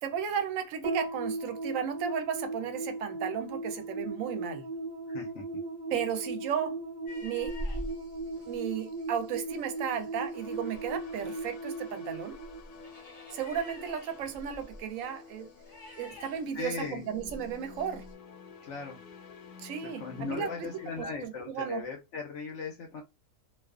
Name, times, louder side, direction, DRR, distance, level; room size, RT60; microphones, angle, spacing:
voice 1, 0.0-4.7 5.9-6.8 7.2-7.6 8.5-12.4 13.3-15.5 16.0-18.1 19.6-20.7 21.0-21.8, right 8 dB, 70° right, 0.9 m, -34 dB
sound 1, 0.8-13.3, right 2 dB, 35° right, 0.5 m, -38 dB
voice 2, 5.1-5.4 16.5-17.0 18.6-19.0 19.8-23.0, left 5 dB, 65° left, 0.8 m, -38 dB
sound 2, 7.1-18.1, equal, 25° left, 0.8 m, -46 dB
sound 3, 10.3-21.1, left 6 dB, 80° left, 1.1 m, -51 dB
2.4 x 2.3 x 2.3 m
omnidirectional pair, 1.6 m